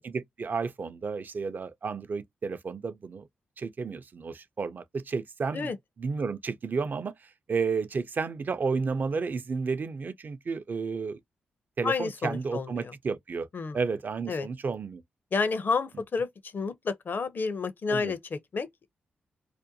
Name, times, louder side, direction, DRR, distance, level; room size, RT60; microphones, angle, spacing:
voice 1, 0.0-3.3 3.6-5.7 6.0-11.2 11.8-13.5 13.7-15.0 17.9-18.1, right 5 dB, 50° right, 0.4 m, -32 dB
voice 2, 11.8-12.9 13.5-13.8 14.3-14.5 15.3-16.3 16.5-18.9, left 4 dB, 55° left, 0.6 m, -30 dB
2.5 x 2.2 x 2.6 m
supercardioid pair, 45°, 4 cm